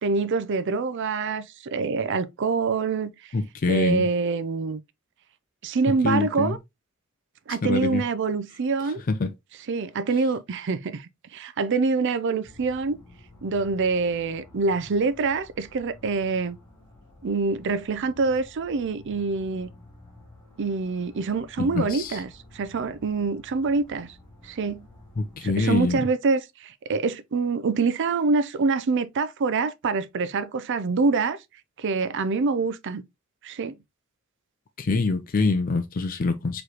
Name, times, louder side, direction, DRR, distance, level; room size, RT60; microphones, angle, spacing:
voice 1, 0.0-3.1 3.7-4.8 5.6-6.6 7.5-9.0 9.7-13.0 13.4-16.6 17.2-19.7 20.6-24.1 24.4-24.9 25.4-31.4 31.8-33.0 33.4-33.8, right 4 dB, 60° right, 0.4 m, -25 dB
voice 2, 3.3-4.1 6.0-6.6 7.6-8.0 8.8-9.3 21.6-22.2 25.2-26.0 34.8-36.6, left 3 dB, 40° left, 0.4 m, -25 dB
sound 1, 12.4-25.8, left 1 dB, 15° left, 2.7 m, -51 dB
4.8 x 3.1 x 2.9 m
head